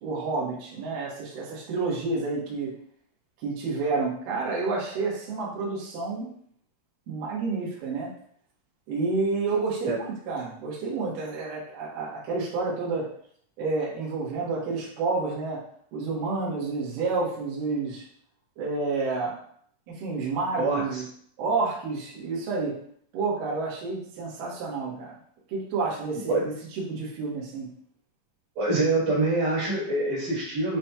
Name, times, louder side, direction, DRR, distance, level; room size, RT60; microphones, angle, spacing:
voice 1, 0.0-2.7 3.4-6.3 7.1-8.1 8.9-13.1 13.6-15.6 15.9-18.0 18.6-19.3 19.9-21.0 21.4-22.8 23.1-25.1 25.5-27.7, right 3 dB, 90° right, -5 dB, 1.9 m, -29 dB
voice 2, 20.6-21.0 26.3-26.4 28.6-30.8, right 2 dB, 60° right, -8 dB, 2.2 m, -25 dB
8.0 x 2.8 x 2.3 m, 0.62 s
omnidirectional pair, 6.0 m